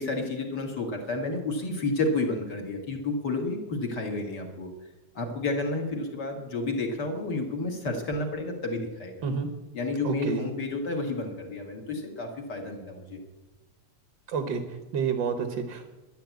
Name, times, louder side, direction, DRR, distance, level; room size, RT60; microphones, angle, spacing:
voice 1, 0.0-4.7 5.1-9.2 9.7-13.2, left 2 dB, 40° left, 3 dB, 1.9 m, -31 dB
voice 2, 10.0-10.5 14.3-15.9, right 6 dB, 55° right, 7 dB, 1.4 m, -30 dB
10.5 x 10.5 x 8.2 m, 1.1 s
omnidirectional pair, 3.3 m